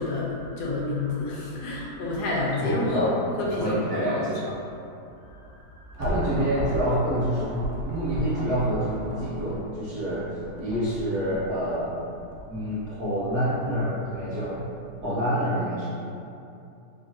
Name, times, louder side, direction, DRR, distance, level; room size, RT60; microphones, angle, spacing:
voice 1, 0.0-3.1 3.4-3.8 4.0-4.1 4.5-4.6 5.2-5.9, left 2 dB, 80° left, -4 dB, 1.2 m, -29 dB
voice 2, 2.6-3.1 3.6-4.4 5.9-10.3 10.6-12.0 12.5-14.7 15.0-15.9, equal, 60° right, -10 dB, 0.8 m, -27 dB
sound 1, 5.6-15.0, equal, 80° right, 1.2 m, -37 dB
3.0 x 2.4 x 2.7 m, 2.6 s
omnidirectional pair, 1.8 m